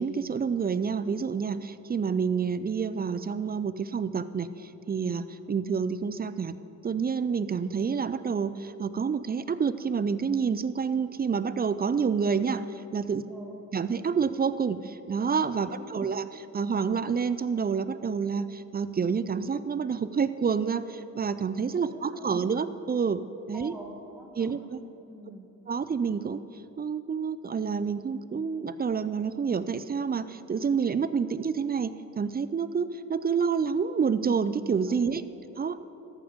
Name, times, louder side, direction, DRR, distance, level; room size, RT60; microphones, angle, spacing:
voice 1, 0.0-6.6 6.8-12.6 12.9-13.2 13.7-16.3 16.5-23.2 23.5-23.7 24.4-24.8 25.7-26.4 26.8-35.2 35.6-35.8, right 6 dB, 30° right, 14 dB, 0.4 m, -28 dB
voice 2, 13.2-13.6 15.6-16.1 21.8-22.4 23.5-25.4 34.9-35.5, equal, ahead, -1 dB, 2.0 m, -47 dB
14.0 x 5.1 x 7.1 m, 2.8 s
cardioid pair, 90°, 33 cm